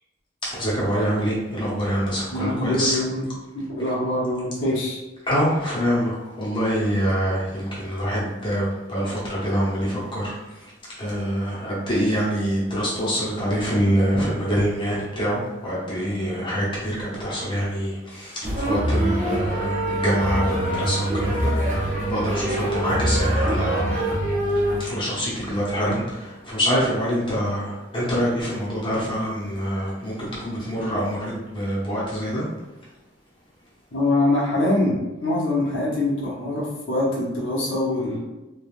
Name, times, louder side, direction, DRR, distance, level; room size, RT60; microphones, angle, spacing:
voice 1, 0.5-3.0 5.3-10.3 11.0-18.3 18.6-21.5 21.8-24.0 24.8-26.0 26.5-32.4, equal, 25° left, -7 dB, 0.8 m, -25 dB
voice 2, 2.3-5.0 33.9-38.2, left 1 dB, 70° left, -5 dB, 0.8 m, -24 dB
sound 1, 18.4-24.8, right 1 dB, 35° right, 1.0 m, -24 dB
3.2 x 2.3 x 2.5 m, 1.1 s
head